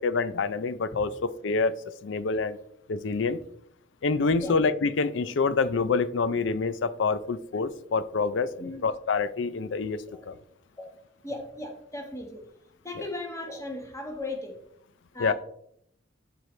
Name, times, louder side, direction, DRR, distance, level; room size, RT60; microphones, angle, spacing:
voice 1, 0.0-1.8 2.0-2.6 2.9-3.4 4.0-10.3 15.2-15.3, left 4 dB, 75° left, 15 dB, 0.5 m, -27 dB
voice 2, 11.2-12.5 12.8-14.6 15.1-15.3, left 2 dB, 15° left, 2 dB, 1.5 m, -37 dB
11.5 x 4.7 x 3.2 m, 0.72 s
head